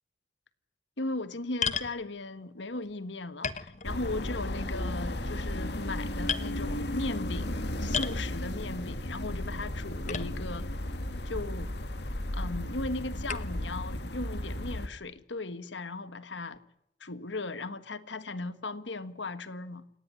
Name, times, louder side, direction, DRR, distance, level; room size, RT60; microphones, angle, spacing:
voice 1, 1.0-10.7 11.2-11.7 12.3-16.6 17.0-19.9, left 2 dB, 85° left, 1.6 m, -37 dB
sound 1, 1.6-2.0 2.8-2.9 3.4-4.3 4.6-5.0 5.6-5.9 6.3-6.5 7.9-8.3 10.1-10.6 11.3-11.4 13.3-13.6, left 6 dB, 40° left, 1.2 m, -33 dB
sound 2, 3.8-14.9, left 1 dB, 65° left, 2.1 m, -34 dB
29.5 x 18.5 x 9.9 m
head